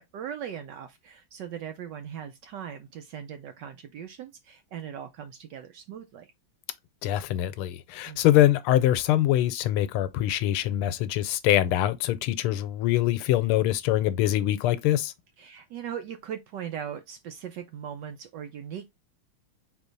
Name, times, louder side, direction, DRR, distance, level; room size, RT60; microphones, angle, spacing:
voice 1, 0.0-6.3 8.1-8.2 15.4-18.9, right 9 dB, 70° right, 1.0 m, -39 dB
voice 2, 7.0-15.1, left 13 dB, 85° left, 1.5 m, -24 dB
4.2 x 3.0 x 3.9 m
omnidirectional pair, 2.3 m